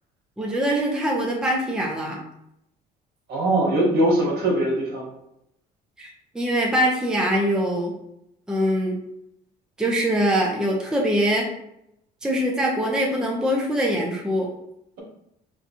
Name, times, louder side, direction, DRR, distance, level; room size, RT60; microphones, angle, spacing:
voice 1, 0.4-2.2 6.0-6.1 6.3-7.9 8.5-9.0 9.8-11.5 12.2-14.5, equal, 5° right, -2 dB, 0.6 m, -23 dB
voice 2, 3.3-5.1, right 1 dB, 65° right, -2 dB, 1.2 m, -21 dB
3.9 x 2.3 x 2.8 m, 0.79 s
cardioid pair, 110°, 17 cm